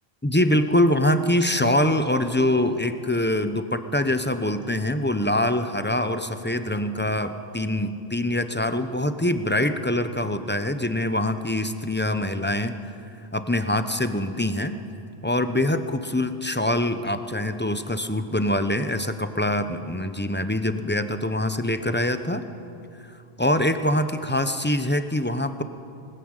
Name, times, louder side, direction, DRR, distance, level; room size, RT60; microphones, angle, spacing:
voice 1, 0.2-12.8 13.3-14.7 15.2-22.5 23.4-25.6, left 1 dB, 10° left, 10 dB, 0.8 m, -24 dB
20.0 x 19.0 x 9.0 m, 2.6 s
omnidirectional pair, 1.1 m